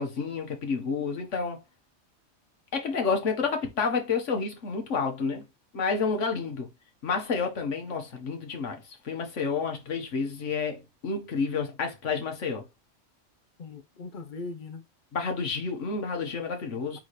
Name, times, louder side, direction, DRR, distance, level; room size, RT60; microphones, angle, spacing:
voice 1, 0.0-1.6 2.7-5.5 5.7-6.7 7.0-12.7 15.1-17.0, left 5 dB, 75° left, 1.5 m, -30 dB
voice 2, 13.6-14.8 16.6-17.0, left 3 dB, 50° left, 0.7 m, -41 dB
4.1 x 3.7 x 3.1 m
omnidirectional pair, 1.3 m